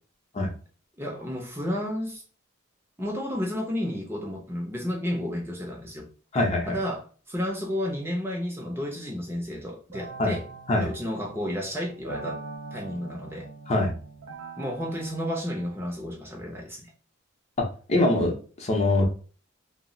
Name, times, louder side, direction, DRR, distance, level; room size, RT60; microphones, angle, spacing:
voice 1, 1.0-2.2 3.0-6.1 6.7-10.4 10.8-12.4 12.7-13.5 14.6-16.9, equal, 10° right, 0 dB, 0.5 m, -32 dB
voice 2, 6.3-6.8 10.2-10.3 10.7-10.9 13.7-13.9 17.6-19.1, left 2 dB, 35° left, 1 dB, 0.6 m, -24 dB
sound 1, 9.9-15.8, right 3 dB, 75° right, 0.6 m, -43 dB
2.3 x 2.0 x 3.7 m, 0.39 s
head